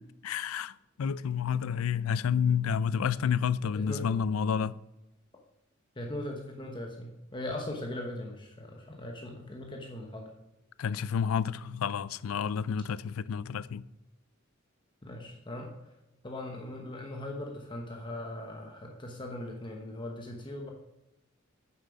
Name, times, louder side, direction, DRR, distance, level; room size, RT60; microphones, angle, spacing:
voice 1, 0.2-4.8 10.8-13.8, left 7 dB, 90° left, 0.4 m, -30 dB
voice 2, 3.7-4.1 6.0-10.3 15.0-15.9 16.2-20.7, left 1 dB, 25° left, 1.0 m, -39 dB
8.9 x 7.4 x 5.3 m
head